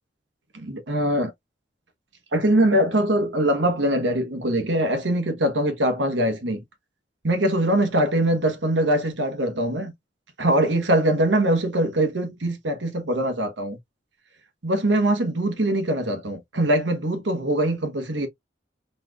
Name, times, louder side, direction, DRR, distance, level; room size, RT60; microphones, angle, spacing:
voice 1, 0.5-1.3 2.3-6.6 7.2-9.9 10.4-13.8 14.6-18.3, right 1 dB, 75° right, 1.2 m, -22 dB
4.1 x 3.2 x 2.4 m
head